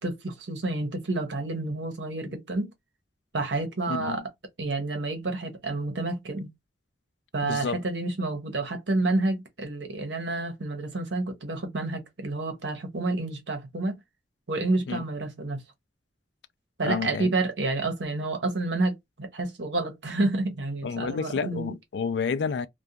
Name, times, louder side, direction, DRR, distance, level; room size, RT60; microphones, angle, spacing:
voice 1, 0.0-2.7 3.3-4.2 4.6-6.5 7.3-14.0 14.5-15.6 16.8-21.7, right 2 dB, 80° right, 0.9 m, -29 dB
voice 2, 3.9-4.2 7.4-7.8 14.9-15.0 16.8-17.3 20.8-22.7, left 5 dB, 75° left, 0.4 m, -30 dB
2.4 x 2.3 x 2.7 m
head